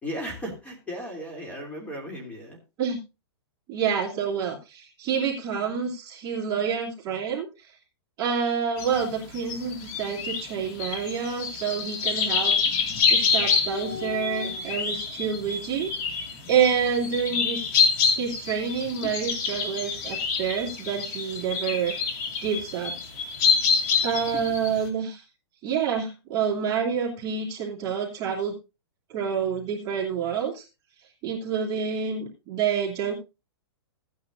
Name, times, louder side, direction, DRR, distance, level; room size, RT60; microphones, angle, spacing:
voice 1, 0.0-2.6, equal, 10° left, 1 dB, 3.1 m, -36 dB
voice 2, 3.7-7.5 8.2-12.5 13.1-15.9 16.5-17.7 18.0-22.9 24.0-25.2 25.6-28.5 29.1-30.6 31.2-33.1, right 7 dB, 25° right, -2 dB, 2.7 m, -28 dB
sound 1, 8.8-24.9, left 5 dB, 40° left, 2.3 m, -27 dB
15.5 x 9.4 x 2.6 m, 0.28 s
hypercardioid pair, 155°, 14 cm